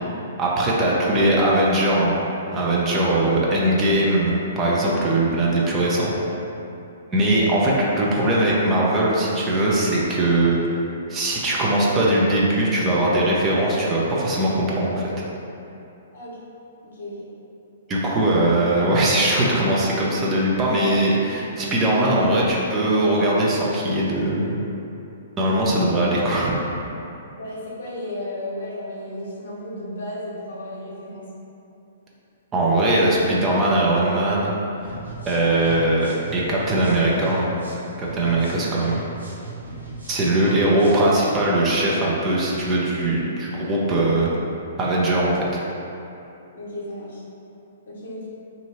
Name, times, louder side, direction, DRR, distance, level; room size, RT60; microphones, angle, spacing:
voice 1, 0.4-2.2 2.5-6.1 7.1-10.8 11.1-15.1 17.9-24.6 25.4-26.5 32.5-34.5 35.3-37.5 38.0-39.2 40.1-44.3 44.8-45.4, right 1 dB, 20° right, -5 dB, 0.6 m, -20 dB
voice 2, 16.8-17.3 27.3-31.3 32.7-33.1 40.2-40.6 46.5-47.2 47.9-48.3, left 1 dB, 60° left, -6 dB, 0.9 m, -34 dB
sound 1, 34.8-41.1, right 2 dB, 80° right, 0.9 m, -38 dB
2.8 x 2.7 x 4.1 m, 2.8 s
figure-of-eight pair, 120°, 0 cm